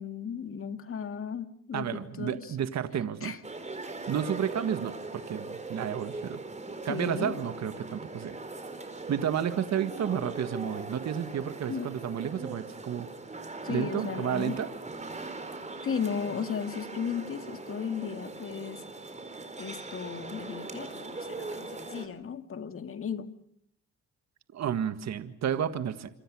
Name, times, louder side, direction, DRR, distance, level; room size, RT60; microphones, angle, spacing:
voice 1, 0.0-2.6 3.2-3.4 6.9-7.3 11.7-11.9 13.6-14.6 15.8-18.8 19.6-23.3, left 7 dB, 45° left, 9 dB, 2.1 m, -35 dB
voice 2, 1.7-3.3 4.1-6.4 6.8-8.4 9.1-13.1 13.7-14.7 24.5-26.1, right 9 dB, 60° right, 10 dB, 1.7 m, -31 dB
sound 1, 3.4-22.1, right 3 dB, 25° right, 4.3 m, -40 dB
27.5 x 25.0 x 6.3 m, 0.70 s
cardioid pair, 90°, 30 cm